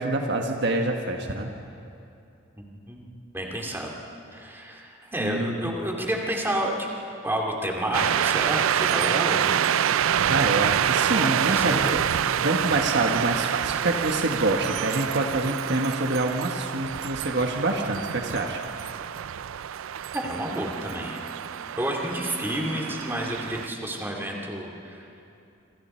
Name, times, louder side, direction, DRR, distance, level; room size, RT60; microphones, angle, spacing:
voice 1, 0.0-1.5 5.2-5.8 10.3-11.9 12.4-18.6, right 2 dB, 55° right, 3 dB, 1.4 m, -26 dB
voice 2, 2.5-3.1 3.3-3.9 4.3-6.9 7.2-9.6 11.1-11.9 20.1-21.2 21.8-25.1, right 1 dB, 10° right, -1 dB, 2.6 m, -30 dB
sound 1, 7.9-23.7, right 9 dB, 80° right, 0.4 m, -27 dB
26.0 x 26.0 x 4.5 m, 2.7 s
head